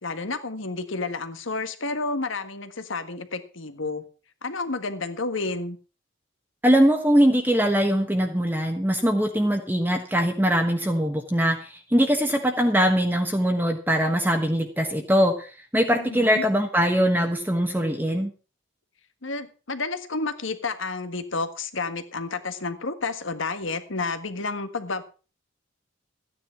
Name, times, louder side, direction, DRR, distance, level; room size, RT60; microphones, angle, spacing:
voice 1, 0.0-4.0 4.4-5.8 16.0-16.4 19.2-25.0, left 3 dB, 85° left, 10 dB, 1.6 m, -30 dB
voice 2, 6.6-18.3, equal, 10° right, 3 dB, 1.3 m, -22 dB
13.5 x 9.7 x 5.9 m, 0.36 s
head